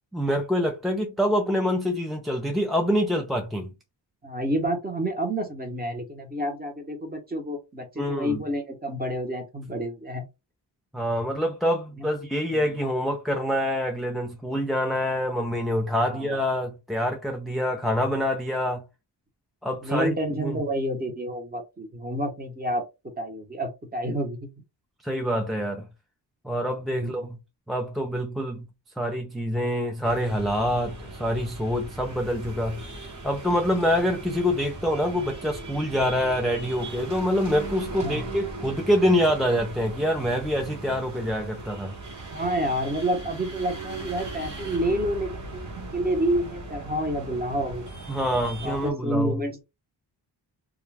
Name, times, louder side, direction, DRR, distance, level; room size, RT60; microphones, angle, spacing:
voice 1, 0.1-3.7 8.0-8.4 10.9-18.8 19.6-20.6 25.0-25.9 26.4-27.4 27.7-28.6 29.0-32.8 33.2-42.0 48.1-49.4, equal, ahead, 0.4 m, -26 dB
voice 2, 4.2-10.2 12.0-12.1 12.5-12.8 16.1-16.3 19.8-22.8 23.2-24.5 26.9-27.3 37.9-38.3 42.3-47.8 48.6-49.6, right 1 dB, 20° right, 0.8 m, -29 dB
sound 1, 30.0-48.9, right 2 dB, 40° right, 1.0 m, -38 dB
2.4 x 2.2 x 3.2 m
wide cardioid pair, 100°, 43 cm